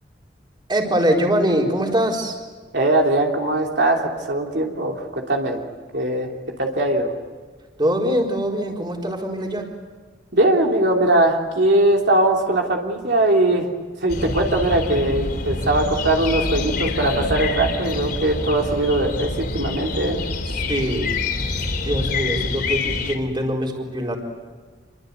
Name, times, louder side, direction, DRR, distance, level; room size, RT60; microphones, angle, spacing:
voice 1, 0.7-2.4 7.8-9.7 20.7-21.1 21.8-24.2, equal, 25° right, 1 dB, 4.3 m, -23 dB
voice 2, 2.7-5.6 5.9-6.3 6.6-7.1 10.3-13.7 14.0-20.2, right 1 dB, 65° right, 1 dB, 3.2 m, -20 dB
sound 1, 14.1-23.2, left 3 dB, 60° left, 3.7 m, -26 dB
28.0 x 23.5 x 8.2 m, 1.5 s
head